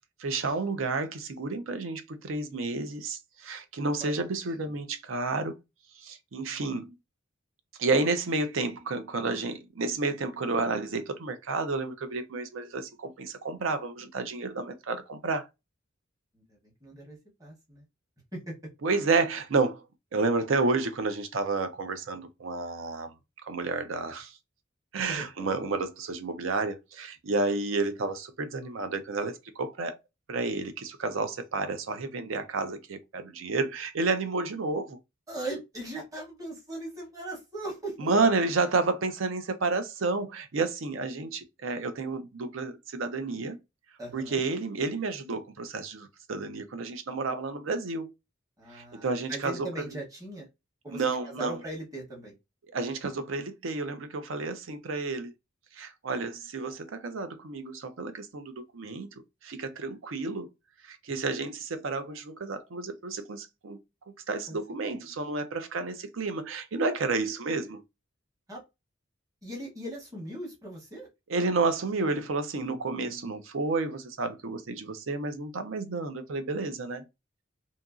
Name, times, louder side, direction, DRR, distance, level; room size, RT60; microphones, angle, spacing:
voice 1, 0.2-5.6 6.0-6.9 7.8-15.4 18.8-19.8 20.1-23.1 23.4-24.4 24.9-30.0 30.3-35.0 38.0-43.6 44.1-48.1 48.7-49.8 50.9-51.6 52.7-55.3 55.7-59.1 59.4-60.5 60.8-63.8 64.3-67.8 71.3-77.0, right 3 dB, 80° right, 0.5 m, -30 dB
voice 2, 4.0-4.8 16.3-17.8 18.3-18.5 25.1-25.6 35.3-38.1 44.0-44.4 48.6-50.5 50.8-52.3 64.5-64.6 64.9-65.0 68.5-68.6 69.4-71.1, right 1 dB, 15° right, 0.9 m, -40 dB
2.8 x 2.6 x 2.3 m
head